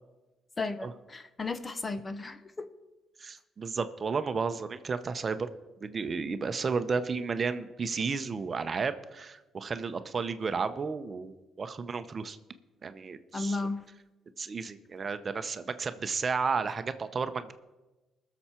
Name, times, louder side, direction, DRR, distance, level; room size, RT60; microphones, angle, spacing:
voice 1, 0.6-2.7 13.3-13.8, left 3 dB, 30° left, 11 dB, 0.9 m, -34 dB
voice 2, 3.2-5.5 5.8-12.4 12.8-13.7 14.4-17.5, right 5 dB, 40° right, 11 dB, 0.8 m, -33 dB
21.0 x 7.0 x 4.4 m, 1.1 s
cardioid pair, 90°, 0 cm